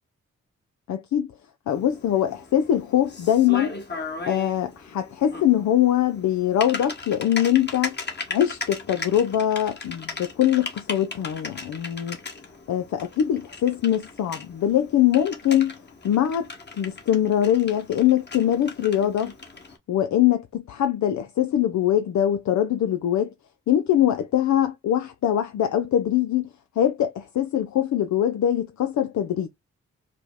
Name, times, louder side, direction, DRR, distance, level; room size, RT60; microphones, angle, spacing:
voice 1, 0.9-1.3 1.7-3.7 4.3-8.0 8.3-12.2 12.7-15.8 16.0-16.5 16.8-19.3 19.9-23.3 23.7-26.5 26.8-29.5, left 11 dB, 75° left, 0.5 m, -22 dB
Typing, 1.7-19.8, left 3 dB, 35° left, 1.4 m, -38 dB
5.0 x 2.1 x 3.5 m
cardioid pair, 60°, 29 cm